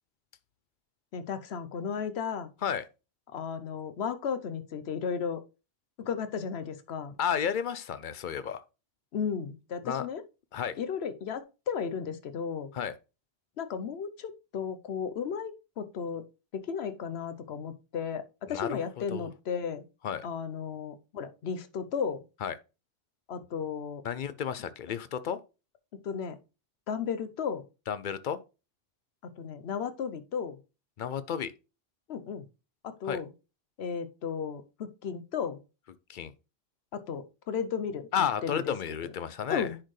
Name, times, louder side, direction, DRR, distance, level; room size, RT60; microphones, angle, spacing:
voice 1, 1.1-2.5 3.3-5.4 6.0-7.2 9.1-10.2 10.8-12.7 13.6-16.2 16.5-19.8 20.2-22.2 23.3-24.0 26.0-26.4 26.9-27.6 29.4-30.6 32.1-32.4 32.8-33.3 33.8-35.6 36.9-38.6 39.5-39.8, left 6 dB, 90° left, 1.0 m, -34 dB
voice 2, 7.2-8.6 9.8-10.1 10.5-10.7 12.7-12.9 18.5-19.3 20.0-20.3 22.4-22.6 24.0-25.4 27.9-28.4 31.0-31.5 33.0-33.2 36.1-36.3 38.1-39.7, left 8 dB, 60° left, 0.6 m, -32 dB
9.9 x 4.4 x 3.1 m
omnidirectional pair, 1.0 m